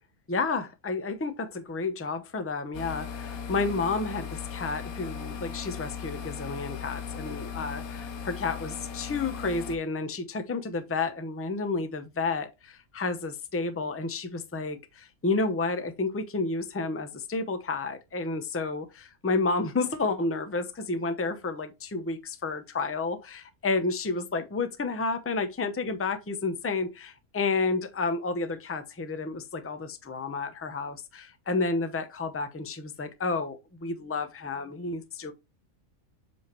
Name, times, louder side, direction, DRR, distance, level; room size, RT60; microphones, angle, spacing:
voice 1, 0.3-35.3, left 3 dB, 15° left, 0.5 m, -31 dB
sound 1, 2.7-9.8, left 7 dB, 85° left, 1.4 m, -38 dB
7.9 x 4.9 x 3.0 m
omnidirectional pair, 1.5 m